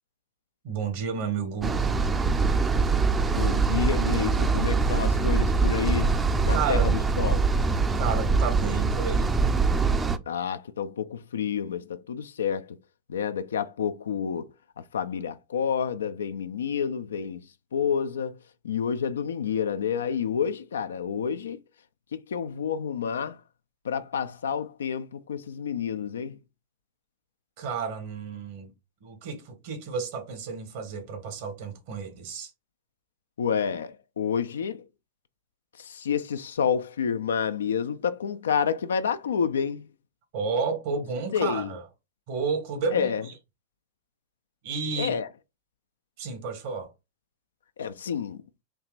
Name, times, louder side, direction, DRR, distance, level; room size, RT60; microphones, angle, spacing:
voice 1, 0.6-1.9 6.5-6.9 7.9-9.3 27.6-28.7 29.0-32.5 40.3-41.8 42.3-43.3 44.6-45.2 46.2-46.9, right 5 dB, 60° right, 1.5 m, -31 dB
sound 1, 1.6-10.2, right 4 dB, 20° right, 0.5 m, -23 dB
voice 2, 3.2-6.2 6.4-7.5 10.3-12.8 13.1-14.5 14.9-18.4 18.6-21.6 22.1-23.4 23.8-26.4 33.4-34.8 35.8-39.9 41.3-41.7 42.9-43.2 45.0-45.3 47.8-48.4, left 7 dB, 80° left, 0.3 m, -29 dB
4.6 x 2.8 x 2.5 m
hypercardioid pair, 100°, 0 cm